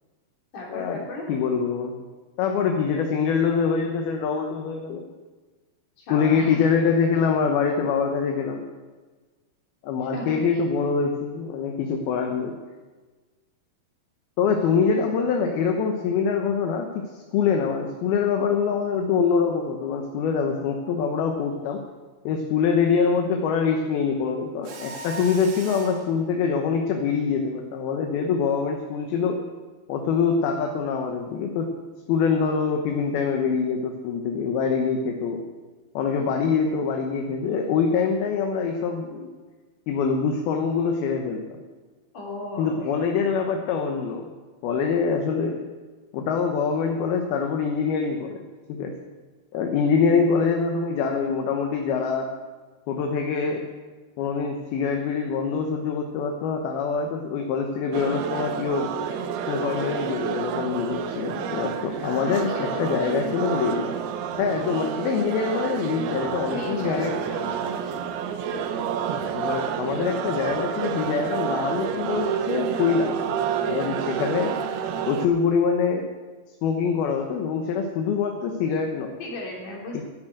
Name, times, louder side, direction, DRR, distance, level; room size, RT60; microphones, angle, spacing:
voice 1, 0.5-1.3 6.0-6.6 10.1-10.5 42.1-42.8 61.8-61.9 62.2-63.3 66.5-67.5 79.2-80.0, left 1 dB, 50° left, -2 dB, 4.5 m, -35 dB
voice 2, 1.3-2.0 2.4-5.0 6.1-8.6 9.8-12.5 14.4-17.0 17.3-21.8 22.2-29.4 29.9-31.7 32.1-35.4 35.9-39.3 39.9-41.5 42.6-44.3 44.6-45.6 46.1-48.4 48.7-48.9 49.5-52.3 52.9-53.7 54.2-58.9 59.5-63.9 64.4-67.2 69.3-73.1 73.6-74.6 75.1-76.1 76.6-79.2, left 5 dB, 75° left, 3 dB, 2.9 m, -24 dB
Mechanisms, 24.6-26.1, right 3 dB, 55° right, 1.9 m, -38 dB
sound 1, 57.9-75.3, right 7 dB, 80° right, 2.9 m, -29 dB
11.5 x 11.0 x 7.9 m, 1.3 s
omnidirectional pair, 4.6 m